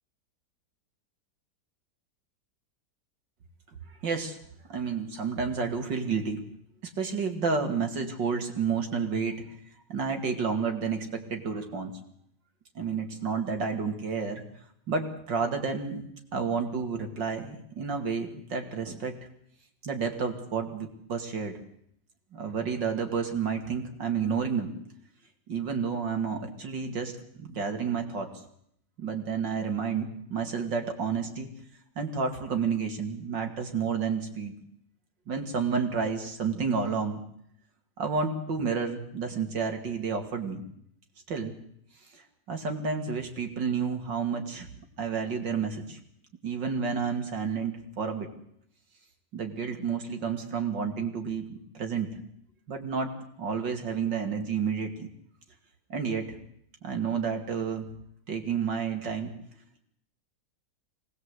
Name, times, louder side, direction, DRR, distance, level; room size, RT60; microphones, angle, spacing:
voice 1, 4.0-4.4 4.7-6.5 6.8-9.4 9.9-11.9 12.7-14.4 14.9-16.0 16.3-19.2 19.8-21.6 22.3-24.7 25.5-28.3 29.0-31.5 32.0-34.5 35.3-37.2 38.0-40.6 41.3-41.6 42.1-42.2 42.5-44.7 45.0-46.0 46.4-48.3 49.3-52.2 52.7-55.1 55.9-56.3 56.8-57.9 58.3-59.3, right 5 dB, 80° right, 5 dB, 3.1 m, -30 dB
24.5 x 19.0 x 8.1 m, 0.71 s
omnidirectional pair, 2.0 m